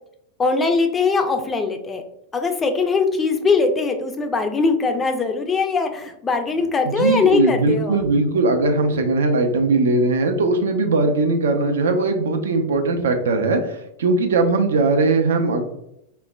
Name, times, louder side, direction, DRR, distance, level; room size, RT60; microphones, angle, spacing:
voice 1, 0.4-2.0 2.3-8.0, left 4 dB, 20° left, 5 dB, 0.4 m, -21 dB
voice 2, 6.9-15.6, right 3 dB, 65° right, 6 dB, 0.4 m, -19 dB
3.1 x 2.0 x 2.2 m, 0.81 s
figure-of-eight pair, 90°, 0 cm